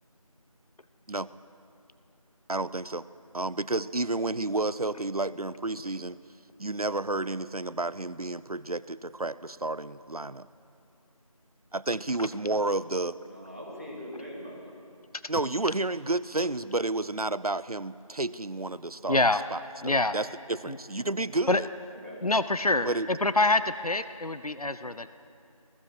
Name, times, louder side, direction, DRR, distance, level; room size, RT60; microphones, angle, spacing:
voice 1, 2.5-3.1 3.3-6.2 6.6-10.5 11.7-13.2 15.3-21.7 22.8-23.1, right 2 dB, 85° right, 17 dB, 0.8 m, -31 dB
voice 2, 13.1-14.8 20.9-21.4 21.9-22.3, equal, 25° right, -4 dB, 3.0 m, -43 dB
voice 3, 19.1-19.4 19.8-20.2 20.7-20.8 21.5-21.6 22.2-25.1, left 2 dB, 80° left, 13 dB, 0.9 m, -25 dB
28.0 x 20.5 x 4.9 m, 2.6 s
figure-of-eight pair, 180°, 19 cm